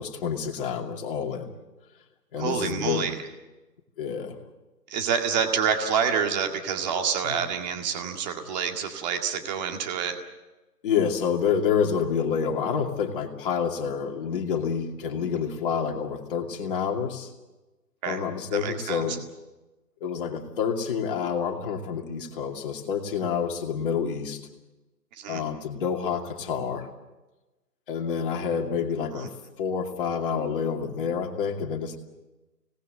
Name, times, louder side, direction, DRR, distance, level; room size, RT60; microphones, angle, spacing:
voice 1, 0.0-1.5 2.3-3.1 4.0-4.4 7.2-7.4 10.8-17.3 18.1-19.2 20.0-24.4 25.3-26.9 27.9-29.3 29.6-32.0, left 7 dB, 35° left, 2 dB, 2.6 m, -28 dB
voice 2, 2.4-3.2 4.9-10.2 18.0-18.2 18.5-19.0 25.2-25.4 29.1-29.2, right 7 dB, 25° right, 4 dB, 2.0 m, -27 dB
25.5 x 19.0 x 7.8 m, 1.1 s
figure-of-eight pair, 145°, 49 cm